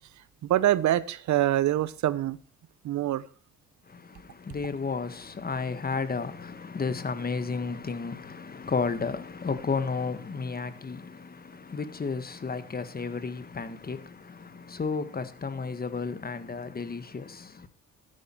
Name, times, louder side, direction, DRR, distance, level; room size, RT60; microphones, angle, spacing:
voice 1, 0.4-2.4 2.8-3.2, right 13 dB, 70° right, 0.9 m, -25 dB
voice 2, 3.9-17.7, left 4 dB, 30° left, 1.5 m, -33 dB
13.0 x 10.0 x 4.5 m
cardioid pair, 90°, 30 cm